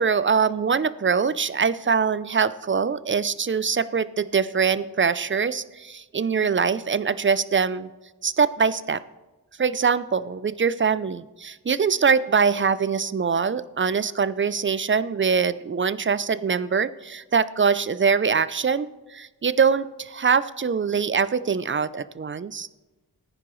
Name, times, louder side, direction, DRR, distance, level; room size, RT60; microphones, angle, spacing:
voice 1, 0.0-7.9 8.2-9.0 9.6-22.7, right 6 dB, 30° right, 16 dB, 0.4 m, -23 dB
15.0 x 9.9 x 3.1 m, 1.2 s
wide cardioid pair, 55°, 40 cm